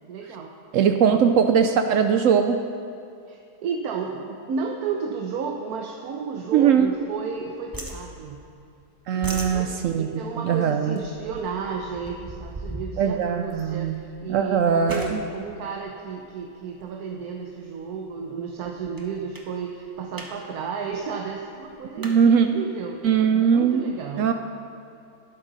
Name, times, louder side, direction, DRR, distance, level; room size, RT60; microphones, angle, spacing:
voice 1, 0.1-0.5 1.0-1.2 3.3-8.4 9.1-24.3, right 5 dB, 65° right, 0 dB, 1.2 m, -33 dB
voice 2, 0.7-2.6 6.5-6.9 9.1-10.1 10.4-11.0 13.0-14.0 14.3-15.2 22.0-22.5 23.0-23.8 24.2-24.3, right 7 dB, 85° right, 6 dB, 0.7 m, -20 dB
sound 1, 6.5-7.4 7.7-8.7 9.0-16.8 17.4-17.7 18.1-18.2 18.5-19.0 19.3-19.5 19.9-20.3 20.6-20.7 20.9-22.2, right 1 dB, 15° right, 0.8 m, -39 dB
13.0 x 11.5 x 4.0 m, 2.6 s
omnidirectional pair, 1.9 m